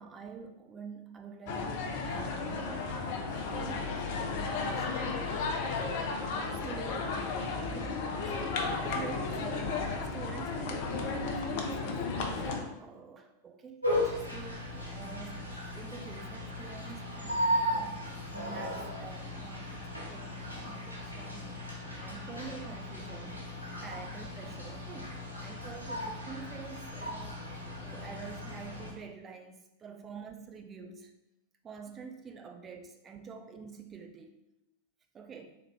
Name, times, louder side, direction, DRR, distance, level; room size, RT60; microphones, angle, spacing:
voice 1, 0.0-5.4 5.7-6.1 6.6-7.0 7.4-9.9 10.1-13.8 14.1-14.5 14.9-21.5 22.0-23.4 23.8-27.4 27.8-31.1 31.6-34.4 35.1-35.6, right 5 dB, 25° right, 5 dB, 0.5 m, -47 dB
sound 1, 1.5-12.6, left 4 dB, 50° left, 0.5 m, -34 dB
sound 2, 13.8-28.9, left 1 dB, 85° left, 0.9 m, -36 dB
3.4 x 3.2 x 3.3 m, 0.88 s
figure-of-eight pair, 90°, 0 cm